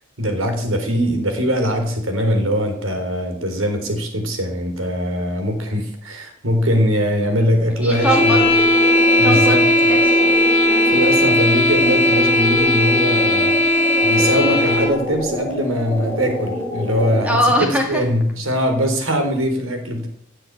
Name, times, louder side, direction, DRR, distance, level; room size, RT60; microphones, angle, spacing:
voice 1, 0.2-8.5 9.2-9.6 10.8-13.6 14.0-20.1, equal, 85° right, 6 dB, 3.9 m, -21 dB
voice 2, 7.8-8.8 9.1-11.0 17.2-18.0, equal, 5° right, 2 dB, 2.1 m, -23 dB
sound 1, 7.9-15.0, left 1 dB, 30° left, 7.6 m, -16 dB
sound 2, 7.9-17.5, left 1 dB, 10° left, 3.0 m, -27 dB
16.0 x 7.8 x 8.5 m, 0.66 s
head